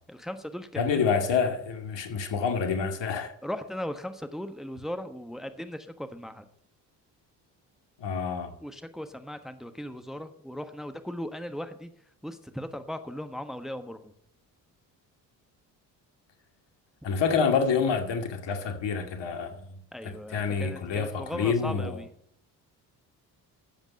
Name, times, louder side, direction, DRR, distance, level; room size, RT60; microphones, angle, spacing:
voice 1, 0.1-1.1 3.4-6.5 8.6-11.9 12.2-14.1 19.9-22.1, equal, ahead, 1.3 m, -38 dB
voice 2, 0.8-3.3 8.0-8.5 17.0-22.0, left 5 dB, 60° left, 2.3 m, -28 dB
14.0 x 8.0 x 5.3 m
hypercardioid pair, 50°, 50 cm